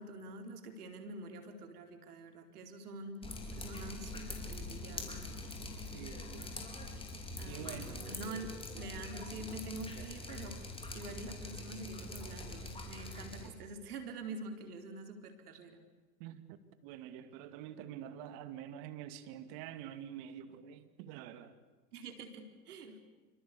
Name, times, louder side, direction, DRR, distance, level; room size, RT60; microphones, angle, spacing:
voice 1, 0.0-5.2 7.4-15.8 21.9-23.0, right 2 dB, 75° right, 4.5 m, -46 dB
Drip, 3.2-13.5, left 2 dB, 10° left, 4.8 m, -44 dB
voice 2, 5.9-6.6 7.5-8.0 16.2-16.6 16.8-21.6, right 10 dB, 45° right, 2.4 m, -47 dB
27.0 x 25.5 x 8.5 m
hypercardioid pair, 110°, 46 cm